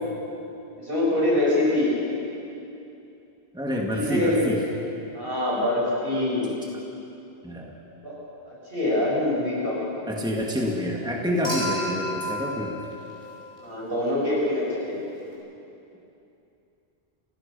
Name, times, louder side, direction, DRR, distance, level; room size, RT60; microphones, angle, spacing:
voice 1, 0.7-1.9 3.9-4.5 5.1-6.5 8.0-8.1 8.5-9.8 13.6-15.0, left 1 dB, 65° right, -6 dB, 7.5 m, -24 dB
voice 2, 3.5-4.6 7.4-7.7 10.1-12.8, equal, 5° right, -1 dB, 2.0 m, -27 dB
Human group actions / Chink clink / Liquid, 11.4-13.8 15.3-15.4, left 1 dB, 50° left, 7.3 m, -32 dB
29.0 x 16.0 x 6.8 m, 2.8 s
omnidirectional pair, 1.0 m